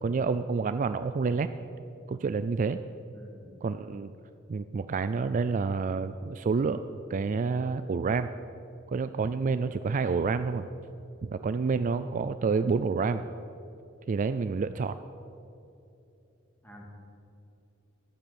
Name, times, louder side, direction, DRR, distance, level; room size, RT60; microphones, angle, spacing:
voice 1, 0.0-1.5 2.1-2.8 3.6-4.1 4.5-6.8 7.1-8.3 8.9-10.7 11.2-13.2 14.1-15.0, right 4 dB, 40° right, 11 dB, 0.3 m, -28 dB
voice 2, 3.1-3.5 16.6-16.8, equal, 10° left, -1 dB, 2.4 m, -49 dB
12.5 x 9.2 x 7.0 m, 2.7 s
head